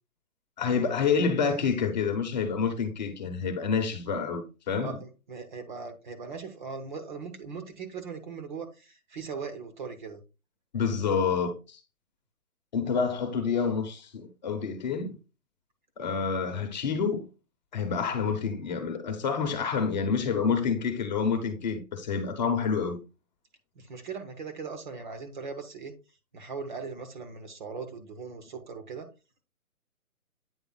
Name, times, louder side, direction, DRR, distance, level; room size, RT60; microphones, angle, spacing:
voice 1, 0.6-5.0 10.7-11.8 12.7-15.1 16.0-17.3 17.7-23.0, left 5 dB, 30° left, 1.0 m, -28 dB
voice 2, 4.8-10.2 23.7-25.9 26.3-29.1, right 5 dB, 35° right, 1.1 m, -39 dB
8.9 x 3.4 x 3.9 m
hypercardioid pair, 150°, 44 cm